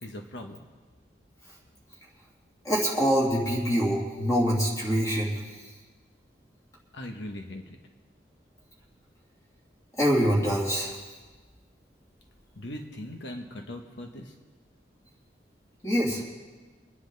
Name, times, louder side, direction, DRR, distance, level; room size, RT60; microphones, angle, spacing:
voice 1, 0.0-0.6 6.9-7.6 12.6-14.3, left 1 dB, 80° left, 3 dB, 1.2 m, -39 dB
voice 2, 2.6-5.3 10.0-10.9 15.8-16.2, equal, 20° left, -4 dB, 2.9 m, -24 dB
24.5 x 9.9 x 4.0 m, 1.3 s
head